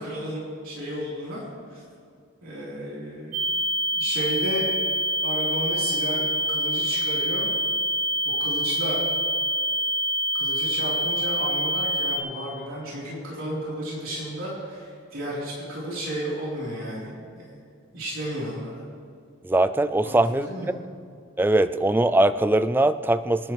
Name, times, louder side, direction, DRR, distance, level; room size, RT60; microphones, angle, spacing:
voice 1, 0.0-1.4 1.7-1.8 2.4-3.5 3.9-4.7 5.2-7.5 8.2-9.0 10.3-17.5 17.9-18.8 20.0-20.7, equal, 70° right, -7 dB, 4.2 m, -33 dB
sound 1, 3.3-12.2, equal, 40° right, 2.5 m, -26 dB
voice 2, 19.4-20.8 21.4-23.5, right 1 dB, 10° right, 13 dB, 0.3 m, -21 dB
25.5 x 11.0 x 3.4 m, 2.3 s
head